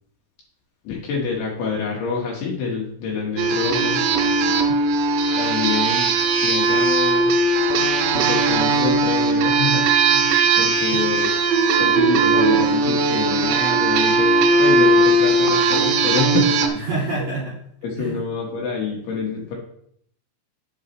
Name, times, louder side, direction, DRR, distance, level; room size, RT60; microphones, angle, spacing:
voice 1, 0.8-4.0 5.4-6.1 6.4-7.3 8.1-11.3 11.8-16.9 17.8-19.6, left 5 dB, 65° left, -2 dB, 3.0 m, -26 dB
sound 1, 3.4-16.7, right 3 dB, 80° right, 2.5 m, -18 dB
voice 2, 4.2-4.8 10.9-11.1 16.6-17.6 17.9-18.2, right 2 dB, 40° right, -7 dB, 2.8 m, -29 dB
9.0 x 8.2 x 3.1 m, 0.67 s
omnidirectional pair, 5.9 m